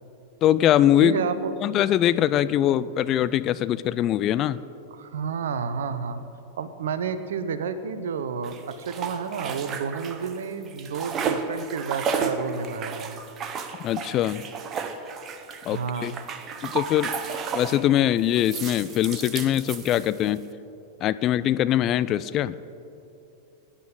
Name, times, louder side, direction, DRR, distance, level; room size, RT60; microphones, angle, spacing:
voice 1, 0.4-1.2 1.6-4.6 13.8-14.4 15.6-16.1 16.6-17.1 17.5-20.4 21.0-22.5, left 12 dB, 35° left, 15 dB, 0.4 m, -22 dB
voice 2, 1.0-1.5 4.9-6.2 6.6-13.2 15.7-16.2, right 6 dB, 60° right, 12 dB, 0.8 m, -30 dB
sound 1, 8.4-10.4 10.7-17.9 18.3-20.4, right 5 dB, 30° right, 1.0 m, -33 dB
22.0 x 9.9 x 3.9 m, 2.8 s
figure-of-eight pair, 90°, 0 cm